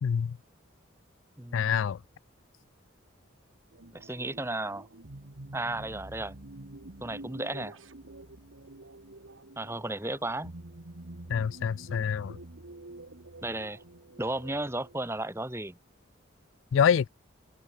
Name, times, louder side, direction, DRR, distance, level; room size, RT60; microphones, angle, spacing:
voice 1, 0.0-0.4 1.5-2.0 11.3-12.4 16.7-17.1, left 7 dB, 75° left, 0.3 m, -26 dB
voice 2, 1.4-1.8 3.9-4.9 5.5-6.3 7.0-7.8 9.6-10.5 13.4-13.8 14.2-15.8, right 2 dB, 10° right, 1.4 m, -34 dB
sound 1, 3.7-15.0, right 2 dB, 75° right, 1.5 m, -47 dB
open air
head